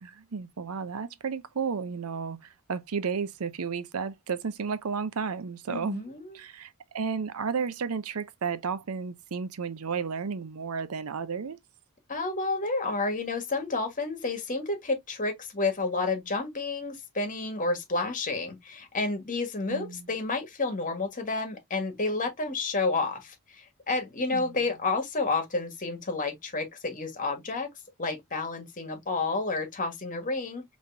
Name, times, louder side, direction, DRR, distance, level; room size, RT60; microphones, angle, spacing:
voice 1, 0.0-6.0 6.3-11.6 19.7-20.1 24.3-24.5, right 5 dB, 85° right, 0.6 m, -33 dB
voice 2, 5.7-6.4 12.1-27.7 28.0-30.6, left 3 dB, 40° left, 1.5 m, -30 dB
5.2 x 3.1 x 2.6 m
head